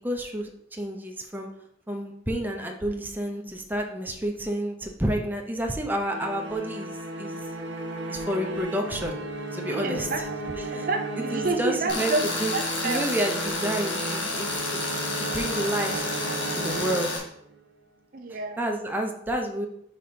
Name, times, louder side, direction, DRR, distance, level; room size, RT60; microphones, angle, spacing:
voice 1, 0.0-1.5 1.9-7.3 8.1-9.2 9.5-10.1 10.7-10.9 11.3-12.1 12.4-12.6 12.8-14.8 15.2-16.1 16.5-17.1 18.6-19.7, right 1 dB, 10° right, 2 dB, 0.7 m, -30 dB
sound 1, 6.1-17.6, right 2 dB, 75° right, 1.2 m, -35 dB
voice 2, 9.7-13.1 18.1-18.6, right 3 dB, 50° right, 5 dB, 0.6 m, -30 dB
Tools, 11.9-17.2, left 2 dB, 80° left, 1.7 m, -30 dB
4.9 x 4.3 x 5.1 m, 0.72 s
head